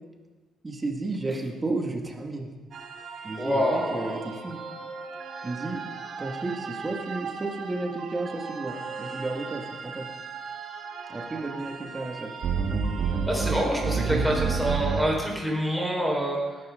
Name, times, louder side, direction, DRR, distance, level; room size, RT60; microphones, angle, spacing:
voice 1, 0.6-2.5 3.2-4.6 5.4-5.8 6.2-10.1 11.1-12.3, right 2 dB, 25° right, 2 dB, 2.3 m, -32 dB
sound 1, 2.7-15.0, right 5 dB, 65° right, 2.0 m, -32 dB
voice 2, 3.4-4.2 13.3-16.4, equal, ahead, -2 dB, 5.0 m, -26 dB
19.0 x 12.0 x 4.0 m, 1.3 s
cardioid pair, 90°, 0 cm